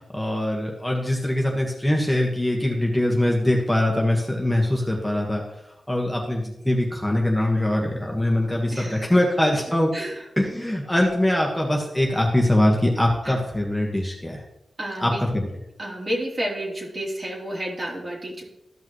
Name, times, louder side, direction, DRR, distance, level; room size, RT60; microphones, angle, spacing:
voice 1, 0.0-5.4 5.9-9.9 10.4-14.4 15.0-15.5, left 1 dB, 5° left, -1 dB, 1.6 m, -22 dB
voice 2, 8.7-9.1 9.9-10.1 13.2-13.4 14.8-15.2 15.8-18.4, equal, 45° right, -3 dB, 3.2 m, -30 dB
13.5 x 5.6 x 3.1 m, 0.87 s
cardioid pair, 55°, 0 cm